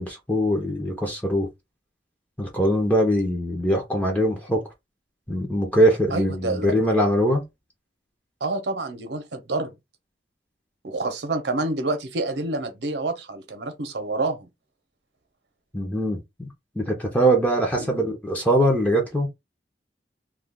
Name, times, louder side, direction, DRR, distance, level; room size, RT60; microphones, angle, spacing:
voice 1, 0.0-1.5 2.4-4.6 5.3-7.4 15.7-16.5 16.8-19.3, equal, 10° left, 0.6 m, -22 dB
voice 2, 6.1-6.7 8.4-9.7 10.8-14.5 17.8-18.0, right 2 dB, 75° right, 0.8 m, -28 dB
2.4 x 2.3 x 3.6 m
head